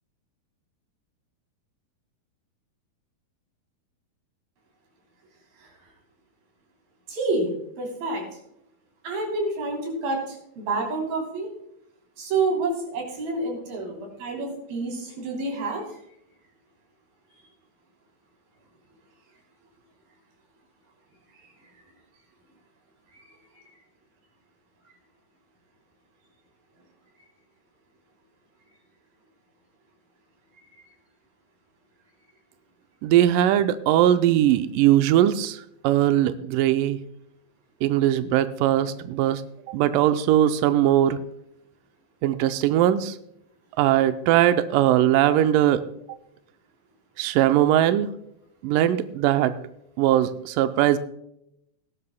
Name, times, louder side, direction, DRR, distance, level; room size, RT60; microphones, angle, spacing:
voice 1, 7.1-7.5 7.8-8.2 9.0-11.5 12.2-15.9 23.1-23.3, right 3 dB, 70° right, 0 dB, 5.0 m, -28 dB
voice 2, 33.0-37.0 37.8-39.4 39.7-41.2 42.2-43.2 43.8-45.8 47.2-48.1 48.6-49.5 50.0-51.0, right 12 dB, 90° right, 10 dB, 1.9 m, -20 dB
18.5 x 12.5 x 2.2 m, 0.78 s
omnidirectional pair, 4.4 m